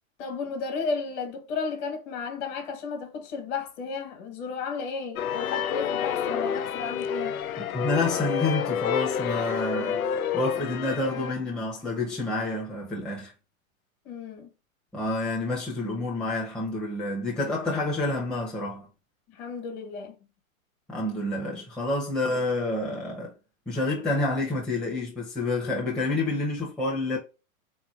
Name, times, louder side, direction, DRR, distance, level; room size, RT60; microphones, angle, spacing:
voice 1, 0.2-7.4 14.0-14.5 19.3-20.1, left 4 dB, 40° left, 1.4 m, -33 dB
sound 1, 5.2-11.3, left 8 dB, 80° left, 0.5 m, -29 dB
voice 2, 7.6-13.3 14.9-18.9 20.9-23.3 23.7-27.2, left 2 dB, ahead, 0.7 m, -28 dB
3.7 x 3.0 x 2.3 m
hypercardioid pair, 110°, 42 cm